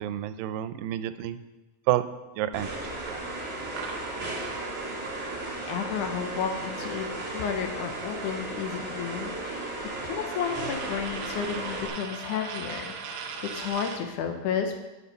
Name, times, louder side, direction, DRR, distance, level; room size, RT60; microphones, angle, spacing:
voice 1, 0.0-1.4 1.9-2.0 2.4-2.8 3.1-3.2, right 13 dB, 90° right, 12 dB, 2.3 m, -29 dB
sound 1, 2.5-11.9, right 2 dB, 25° right, 2.0 m, -35 dB
sound 2, 3.4-13.7, left 1 dB, 45° left, 1.9 m, -50 dB
sound 3, 3.8-7.8 8.1-14.1, right 5 dB, 70° right, 1.8 m, -41 dB
voice 2, 5.7-7.1 7.3-9.7 10.0-13.0 13.4-14.8, left 7 dB, 75° left, 5 dB, 2.0 m, -32 dB
8.5 x 7.0 x 5.5 m, 1.1 s
omnidirectional pair, 4.0 m